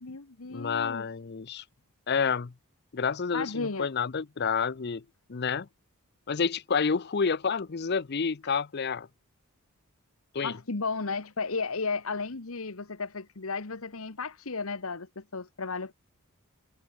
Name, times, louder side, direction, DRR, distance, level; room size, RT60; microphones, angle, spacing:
voice 1, 0.0-1.1 3.3-3.9 10.4-15.9, left 4 dB, 70° left, 1.3 m, -34 dB
voice 2, 0.5-1.6 2.1-2.5 2.9-5.0 5.3-5.7 6.3-9.1 10.3-10.5, left 5 dB, 45° left, 0.6 m, -29 dB
head